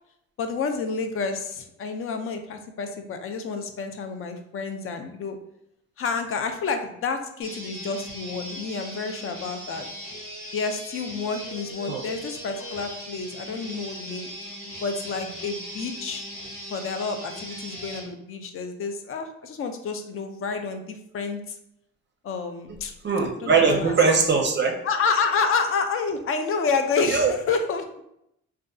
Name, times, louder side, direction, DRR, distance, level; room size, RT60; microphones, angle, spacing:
voice 1, 0.4-5.4 6.0-9.9 10.5-14.3 14.8-16.3 16.7-21.4 22.2-22.9 23.4-24.0 24.8-28.0, left 4 dB, 45° left, 6 dB, 0.4 m, -29 dB
sound 1, 7.4-18.1, equal, 85° left, 1.2 m, -39 dB
voice 2, 23.0-24.8 27.1-27.3, right 4 dB, 35° right, 2 dB, 0.5 m, -21 dB
2.6 x 2.4 x 2.2 m, 0.78 s
cardioid pair, 90°, 30 cm